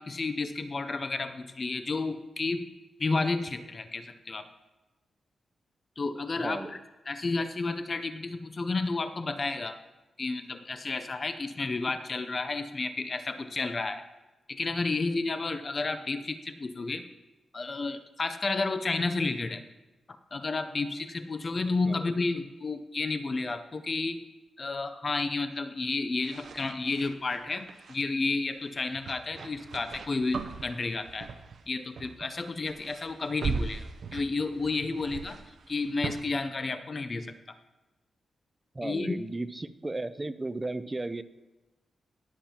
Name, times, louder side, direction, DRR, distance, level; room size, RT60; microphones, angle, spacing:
voice 1, 0.0-2.7 3.0-4.5 6.0-6.8 7.1-9.8 10.2-14.0 14.5-17.1 17.5-19.6 20.3-24.2 24.6-31.3 31.7-35.4 35.7-37.3 38.8-39.2, left 3 dB, 40° left, 9 dB, 0.5 m, -31 dB
voice 2, 6.4-6.7 21.9-22.1 38.7-41.2, right 2 dB, 20° right, 13 dB, 0.5 m, -35 dB
sound 1, 26.2-28.0 28.9-31.7 32.0-32.3 32.6-36.2, right 5 dB, 70° right, 0.6 m, -39 dB
20.5 x 7.3 x 2.9 m, 1.1 s
cardioid pair, 95°, 0 cm